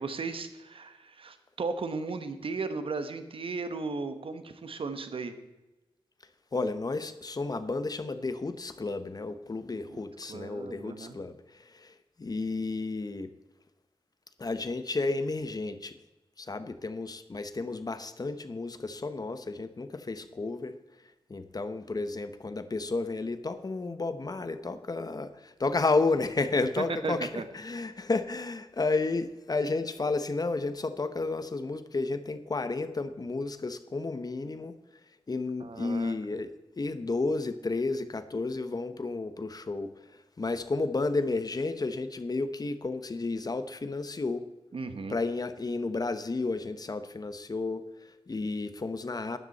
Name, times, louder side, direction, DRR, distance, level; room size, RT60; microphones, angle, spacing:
voice 1, 0.0-5.3 9.9-10.0 10.3-11.1 27.0-27.4 35.6-36.1 44.7-45.1, right 4 dB, 70° right, 9 dB, 1.2 m, -36 dB
voice 2, 6.5-13.3 14.4-16.0 16.4-20.8 21.3-34.8 35.3-44.4 45.1-49.4, left 3 dB, 40° left, 11 dB, 1.0 m, -32 dB
12.0 x 10.5 x 4.2 m, 1.0 s
cardioid pair, 70°, 10 cm